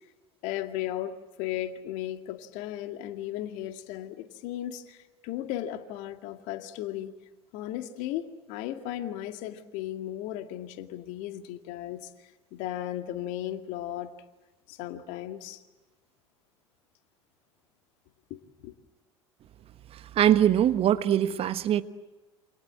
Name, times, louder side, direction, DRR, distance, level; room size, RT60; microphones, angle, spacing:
voice 1, 0.4-7.1 7.5-12.1 12.5-14.1 14.7-15.6 18.3-18.7, left 12 dB, 55° left, 2.2 m, -36 dB
voice 2, 19.9-21.8, right 10 dB, 40° right, 1.2 m, -23 dB
28.5 x 26.5 x 7.6 m
figure-of-eight pair, 75°, 15 cm